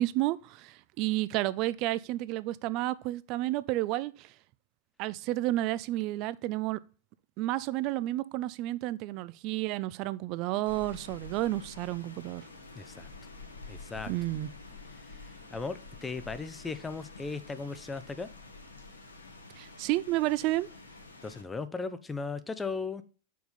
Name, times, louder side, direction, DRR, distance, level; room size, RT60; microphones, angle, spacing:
voice 1, 0.0-4.3 5.0-6.8 7.4-12.5 14.1-14.5 19.6-20.7, right 16 dB, 40° right, 0.3 m, -31 dB
Rain, 10.7-21.4, left 3 dB, 75° left, 1.3 m, -48 dB
voice 2, 12.7-13.1 13.7-14.1 15.3-18.3 21.2-23.0, left 4 dB, 15° left, 0.6 m, -37 dB
5.2 x 4.7 x 4.1 m
figure-of-eight pair, 90°, 0 cm